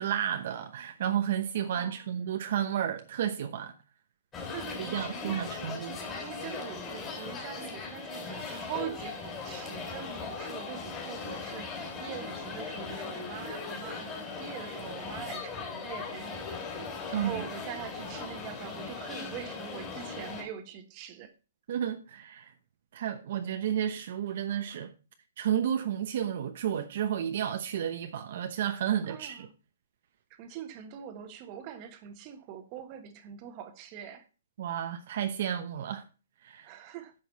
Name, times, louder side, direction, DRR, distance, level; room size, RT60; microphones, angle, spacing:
voice 1, 0.0-3.7 4.8-6.0 17.1-17.3 21.7-22.5 22.9-24.9 25.4-29.5 34.6-36.1 36.4-36.7, right 9 dB, 55° right, 0.9 m, -32 dB
voice 2, 1.6-2.1 4.5-5.4 6.0-11.7 12.0-16.6 17.1-21.3 29.0-29.5 30.3-34.2 36.6-37.1, right 9 dB, 30° right, 1.4 m, -43 dB
sound 1, 4.3-20.4, left 4 dB, 15° left, 3.1 m, -39 dB
10.5 x 6.3 x 4.1 m
hypercardioid pair, 155°, 0 cm